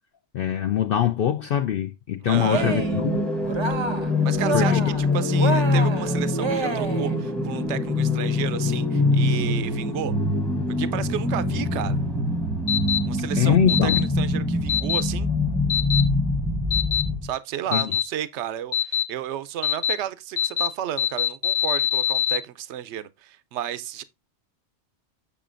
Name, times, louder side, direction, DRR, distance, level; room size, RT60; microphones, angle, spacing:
voice 1, 0.3-3.2 4.5-4.8 13.3-14.1 17.7-17.9, left 10 dB, 65° left, 0.7 m, -23 dB
voice 2, 2.2-2.7 4.2-10.1 10.8-12.0 13.0-15.3 17.2-24.0, right 11 dB, 80° right, 0.9 m, -32 dB
sound 1, 2.3-17.3, left 2 dB, ahead, 0.8 m, -24 dB
Cheering, 2.4-3.1 3.4-4.1 4.4-5.0 5.4-7.2, right 3 dB, 30° right, 0.6 m, -28 dB
sound 2, 12.7-13.0 13.7-14.0 14.7-15.0 15.7-16.0 16.7-17.0 17.7-18.0 18.7-19.0 19.6-19.9 20.4-20.7 21.0-22.4, left 9 dB, 35° left, 1.2 m, -23 dB
7.3 x 6.8 x 2.5 m
omnidirectional pair, 1.2 m